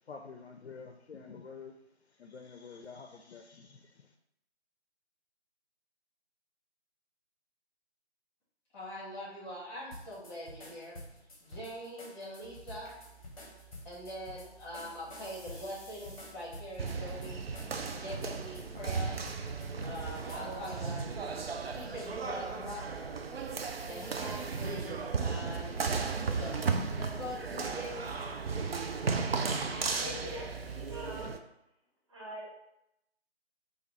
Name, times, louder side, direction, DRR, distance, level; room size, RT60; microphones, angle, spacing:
voice 1, 0.0-1.8 2.0-4.1, left 5 dB, 70° left, 4 dB, 0.5 m, -48 dB
voice 2, 8.7-11.0 11.4-12.9 13.8-17.4 17.9-19.1 19.8-21.0 21.6-22.8 23.8-25.7 26.2-28.1, left 1 dB, 10° left, -7 dB, 1.0 m, -43 dB
sound 1, 9.9-21.0, left 1 dB, 30° left, 0.7 m, -50 dB
sound 2, 12.4-31.2, right 6 dB, 45° right, 0.9 m, -54 dB
sound 3, 16.8-31.4, right 4 dB, 60° right, 0.5 m, -35 dB
voice 3, 29.6-31.3 32.1-32.5, left 1 dB, 25° right, -4 dB, 0.8 m, -44 dB
4.9 x 2.4 x 3.0 m, 0.84 s
figure-of-eight pair, 155°, 34 cm